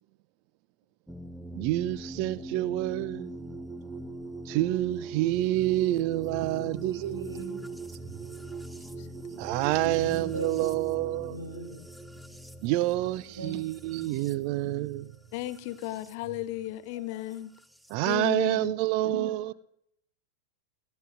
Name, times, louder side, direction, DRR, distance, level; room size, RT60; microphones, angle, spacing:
sound 1, 1.1-16.1 17.3-17.9, right 3 dB, ahead, 0.6 m, -41 dB
voice 1, 1.6-3.3 4.5-7.3 9.4-11.4 12.6-15.1 17.9-19.5, right 16 dB, 45° right, 0.4 m, -28 dB
voice 2, 6.5-7.7 9.3-9.4 9.8-11.8 13.2-13.6 14.0-14.2 16.9-17.0 19.0-19.3, right 2 dB, 75° right, 2.1 m, -40 dB
voice 3, 15.3-17.5 18.1-18.7, left 14 dB, 45° left, 0.6 m, -34 dB
17.5 x 11.5 x 2.6 m
figure-of-eight pair, 90°, 0 cm